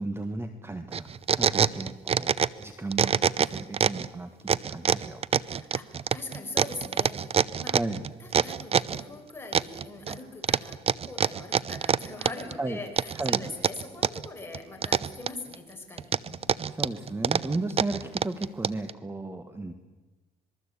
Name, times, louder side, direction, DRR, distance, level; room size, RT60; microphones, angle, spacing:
voice 1, 0.0-2.3 2.6-5.2 7.7-8.0 12.6-12.8 13.1-13.4 16.7-19.7, right 2 dB, 15° right, 8 dB, 1.6 m, -34 dB
sound 1, 0.9-2.6 2.9-4.1 4.5-9.0 9.5-10.2 10.4-12.5 13.0-14.3 14.5-15.5 16.0-18.9, right 7 dB, 35° right, 0.7 m, -25 dB
voice 2, 5.4-7.8 8.2-16.7, left 2 dB, 15° left, 2 dB, 5.8 m, -42 dB
26.5 x 21.0 x 8.4 m, 1.2 s
cardioid pair, 110°, 17 cm